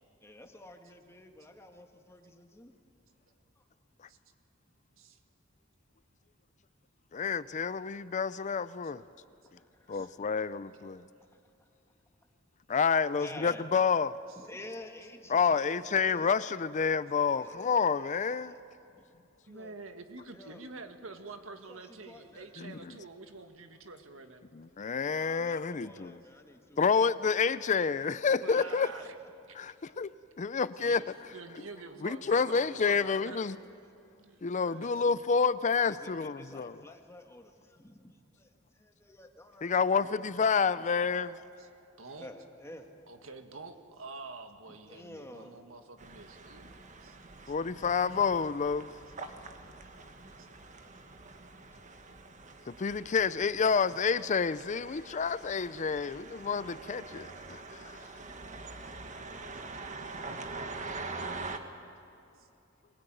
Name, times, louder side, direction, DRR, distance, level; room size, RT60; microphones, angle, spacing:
voice 1, 0.2-2.7 9.6-10.1 11.3-11.7 12.9-13.6 14.4-16.4 17.3-18.6 19.0-19.1 19.4-19.7 20.3-20.7 21.7-22.5 25.1-27.0 28.2-29.1 30.8-31.0 32.3-32.6 33.3-33.7 35.9-40.1 40.8-41.3 42.2-42.9 44.9-45.7, left 1 dB, 15° left, 1.7 m, -51 dB
voice 2, 7.1-9.0 9.9-11.0 12.7-14.2 15.3-18.5 22.6-22.8 24.6-26.2 26.8-28.9 29.6-30.1 30.4-31.0 32.0-33.6 34.4-36.8 39.6-41.4 47.5-48.9 52.7-57.9, left 5 dB, 35° left, 0.5 m, -29 dB
voice 3, 19.5-24.4 28.4-29.2 29.5-29.6 30.5-31.0 31.3-33.4 34.2-35.0 40.0-40.2 41.6-41.7 42.0-42.3 43.1-46.7 47.0-47.2 47.5-47.6 49.1-49.2 50.4-50.5 61.1-61.3 62.4-62.5, right 3 dB, 90° right, 1.8 m, -47 dB
sound 1, 46.0-61.6, right 3 dB, 40° right, 1.5 m, -44 dB
22.5 x 20.0 x 9.2 m
head